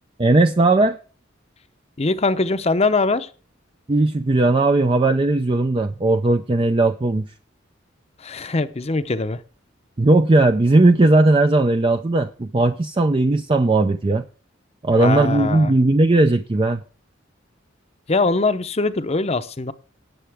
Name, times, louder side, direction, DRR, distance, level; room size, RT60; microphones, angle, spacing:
voice 1, 0.2-1.0 3.9-7.3 10.0-14.3 14.8-16.8, right 2 dB, 25° right, 0.5 m, -17 dB
voice 2, 2.0-3.3 8.2-9.4 15.0-15.7 18.1-19.7, left 3 dB, 35° left, 0.7 m, -22 dB
19.0 x 6.8 x 3.5 m
head